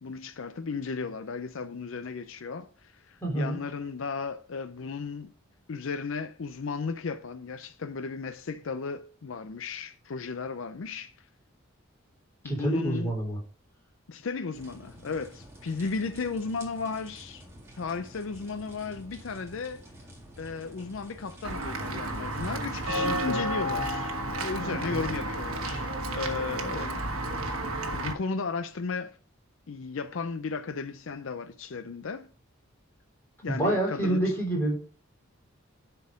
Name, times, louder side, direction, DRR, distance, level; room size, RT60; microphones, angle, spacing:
voice 1, 0.0-5.3 5.7-11.1 12.4-13.1 14.1-17.4 17.8-19.8 20.4-24.1 24.4-27.6 27.9-29.2 29.7-32.3 33.4-34.2, left 4 dB, 70° left, 0.5 m, -35 dB
voice 2, 3.2-3.6 12.4-13.4 22.9-23.4 24.6-25.1 33.5-34.7, right 1 dB, 10° left, 3.4 m, -28 dB
sound 1, 14.5-23.3, equal, 15° right, 2.0 m, -49 dB
Walk footsteps / Bell, 21.4-28.1, right 1 dB, 80° right, 1.2 m, -31 dB
10.5 x 4.6 x 5.1 m
head